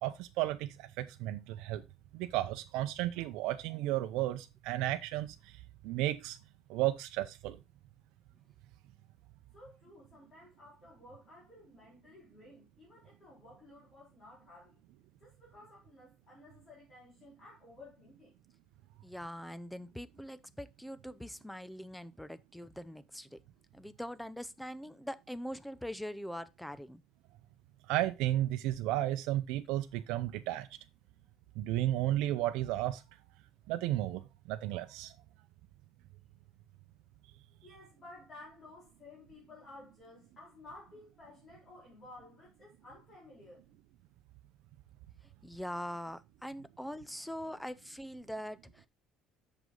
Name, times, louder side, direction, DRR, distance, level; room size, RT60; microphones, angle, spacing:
voice 1, 0.0-1.8 2.1-6.4 6.7-7.6 27.9-30.7 31.6-33.0 33.7-35.1, right 14 dB, 75° right, 0.6 m, -33 dB
voice 2, 9.5-14.8 15.2-18.4 37.6-43.6, left 2 dB, 25° left, 4.1 m, -54 dB
voice 3, 19.0-23.4 23.7-27.0 45.4-48.9, equal, ahead, 0.5 m, -43 dB
8.0 x 6.6 x 3.8 m
cardioid pair, 160°, 0 cm